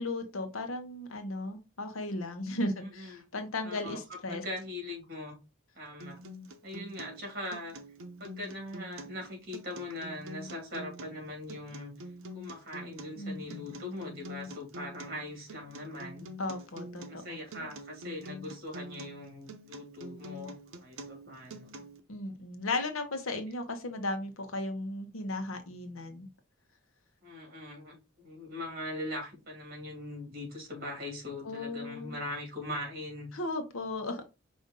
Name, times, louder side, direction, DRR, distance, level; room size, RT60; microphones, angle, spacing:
voice 1, 0.0-4.4 13.2-13.9 16.4-17.7 22.1-26.3 31.4-32.2 33.3-34.3, left 2 dB, 85° left, 1.0 m, -36 dB
voice 2, 2.8-3.2 3.6-5.3 5.7-6.2 6.6-7.8 8.2-11.9 12.3-16.3 17.1-21.7 27.2-33.3, left 1 dB, 45° right, 2.3 m, -41 dB
Acoustic guitar, 6.0-22.0, right 1 dB, 85° right, 0.7 m, -46 dB
5.2 x 2.6 x 3.7 m
head